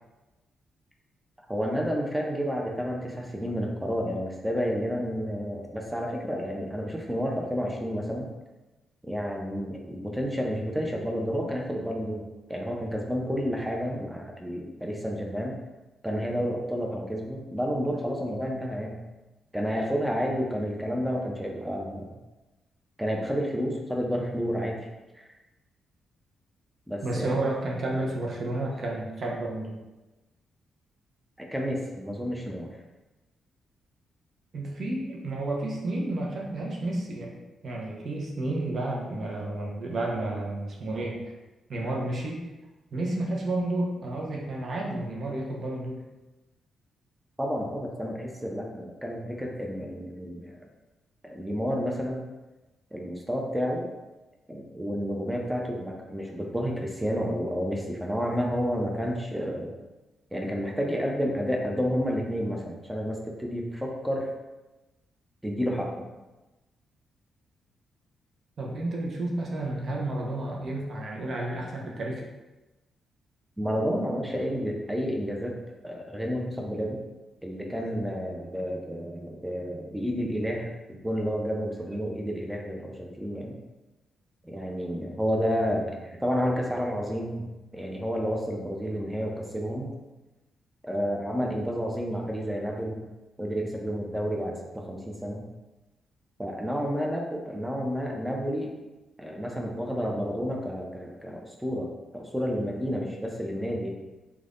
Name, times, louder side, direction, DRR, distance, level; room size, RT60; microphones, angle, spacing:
voice 1, 1.5-8.3 9.0-15.6 16.0-19.0 19.5-22.2 23.0-24.8 25.1-25.3 26.9-27.4 31.4-32.7 47.4-50.6 51.2-52.3 52.9-53.9 54.5-59.7 60.3-64.3 65.4-66.1 73.6-77.0 77.4-83.6 84.4-89.9 90.8-93.0 93.4-95.4 96.4-98.7 99.2-103.9, equal, 10° right, 0 dB, 0.5 m, -30 dB
voice 2, 27.0-29.8 34.5-37.4 37.6-41.3 41.7-42.4 42.9-46.1 68.6-72.2, right 2 dB, 55° right, -2 dB, 0.6 m, -31 dB
3.2 x 2.2 x 2.4 m, 1.1 s
hypercardioid pair, 40°, 0 cm